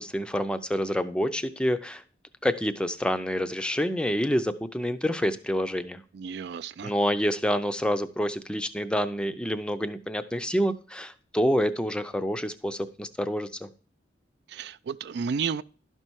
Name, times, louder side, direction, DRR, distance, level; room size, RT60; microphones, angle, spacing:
voice 1, 0.0-2.0 2.4-6.0 6.8-13.7, equal, 5° left, 0.5 m, -27 dB
voice 2, 6.1-6.9 14.5-15.6, right 6 dB, 60° right, 0.3 m, -32 dB
12.0 x 5.5 x 4.6 m
head